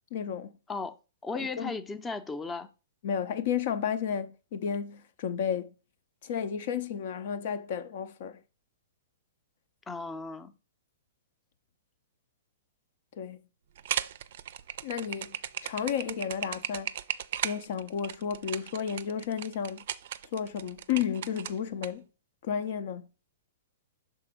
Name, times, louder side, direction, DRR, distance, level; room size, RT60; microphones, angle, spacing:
voice 1, 0.1-0.5 1.3-1.7 3.0-5.7 6.2-8.4 13.1-13.4 14.8-15.4 15.6-16.9 17.4-19.8 20.3-22.1 22.4-23.1, left 8 dB, 50° left, 0.6 m, -32 dB
voice 2, 1.2-2.7 9.9-10.5, left 3 dB, 15° left, 0.6 m, -35 dB
sound 1, 13.8-21.9, right 10 dB, 55° right, 0.4 m, -36 dB
5.8 x 3.7 x 5.0 m
figure-of-eight pair, 110°, 0 cm